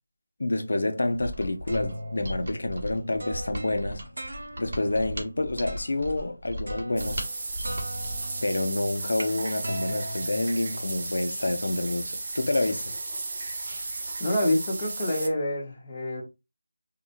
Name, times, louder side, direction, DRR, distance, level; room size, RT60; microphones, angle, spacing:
voice 1, 0.4-7.3 8.4-12.9, left 2 dB, 60° left, 0.4 m, -28 dB
Mechanisms, 1.1-8.3, equal, 50° right, 0.9 m, -37 dB
sound 1, 1.4-4.9 5.6-6.1 6.7-7.4 7.6-11.1, equal, 85° right, 0.8 m, -39 dB
sound 2, 7.0-15.3, right 3 dB, 30° right, 0.5 m, -35 dB
voice 2, 14.2-16.2, left 1 dB, 15° left, 0.6 m, -27 dB
3.5 x 2.1 x 2.7 m
figure-of-eight pair, 175°, 0 cm